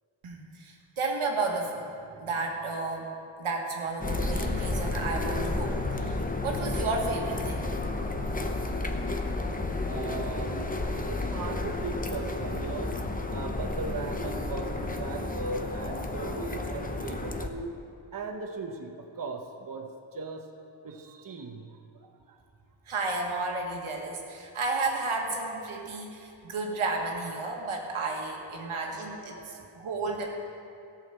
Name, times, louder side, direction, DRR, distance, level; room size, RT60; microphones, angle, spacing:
voice 1, 0.2-1.9 2.2-3.1 3.4-6.2 6.4-7.7 22.9-30.2, right 3 dB, 85° right, 0 dB, 1.6 m, -32 dB
sound 1, 4.0-17.5, left 2 dB, 15° left, 0.8 m, -32 dB
voice 2, 9.9-10.7 11.1-13.0 13.3-17.8 18.1-20.5 20.8-22.4 26.5-26.6 28.6-29.7, right 3 dB, 45° right, 3 dB, 1.0 m, -38 dB
14.0 x 6.5 x 6.9 m, 2.6 s
cardioid pair, 70°, 48 cm